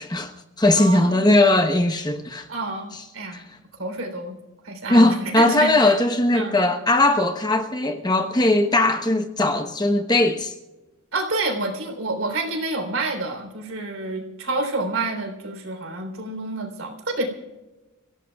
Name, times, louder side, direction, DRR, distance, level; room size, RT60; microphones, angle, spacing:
voice 1, 0.0-2.5 3.3-3.4 4.9-10.5, left 2 dB, 20° left, 0.9 m, -19 dB
voice 2, 0.8-1.3 2.5-3.4 3.8-4.4 4.6-6.0 6.3-6.6 11.1-17.3, right 2 dB, 60° right, 3.6 m, -28 dB
30.0 x 16.5 x 2.3 m
head